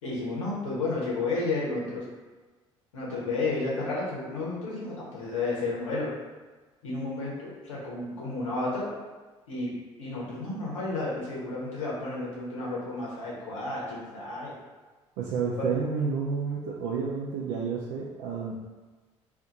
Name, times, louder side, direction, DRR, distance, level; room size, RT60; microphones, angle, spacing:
voice 1, 0.0-2.0 2.9-6.1 6.8-8.9 9.5-9.7 10.0-14.5 15.6-15.7, left 3 dB, 75° left, -6 dB, 1.0 m, -32 dB
voice 2, 15.2-18.5, right 5 dB, 55° right, -4 dB, 0.5 m, -30 dB
2.6 x 2.6 x 3.7 m, 1.3 s
figure-of-eight pair, 55°, 16 cm